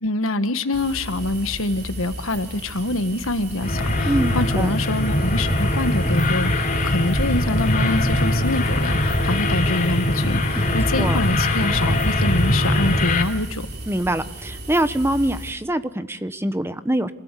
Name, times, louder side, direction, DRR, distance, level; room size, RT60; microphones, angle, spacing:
voice 1, 0.0-13.7, left 2 dB, 90° left, 10 dB, 1.4 m, -25 dB
sound 1, 0.7-15.5, right 1 dB, 55° right, 3.9 m, -35 dB
sound 2, 3.6-13.2, left 1 dB, 40° left, 3.0 m, -21 dB
voice 2, 4.0-4.7 10.6-11.2 13.9-17.1, right 1 dB, 10° right, 11 dB, 1.0 m, -24 dB
26.5 x 17.0 x 8.4 m, 0.90 s
head